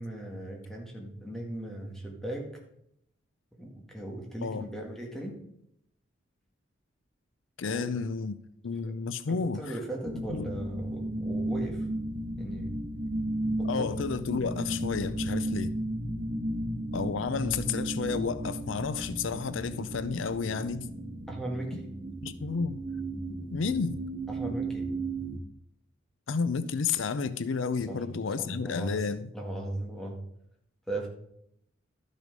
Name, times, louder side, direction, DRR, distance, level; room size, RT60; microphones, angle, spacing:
voice 1, 0.0-2.5 3.6-5.4 7.6-7.9 9.3-11.9 12.4-12.7 13.5-14.0 21.3-21.9 24.3-24.9 27.9-28.0 28.4-29.0 29.3-30.2 30.9-31.1, right 1 dB, ahead, -1 dB, 1.8 m, -38 dB
voice 2, 7.6-8.4 8.6-9.7 10.3-10.5 13.7-15.7 16.9-20.9 21.7-21.8 22.2-22.8 23.5-24.0 26.3-29.3, left 5 dB, 80° left, 14 dB, 0.5 m, -31 dB
sound 1, 10.0-25.4, right 1 dB, 25° right, 0.9 m, -34 dB
12.0 x 6.3 x 5.2 m, 0.75 s
head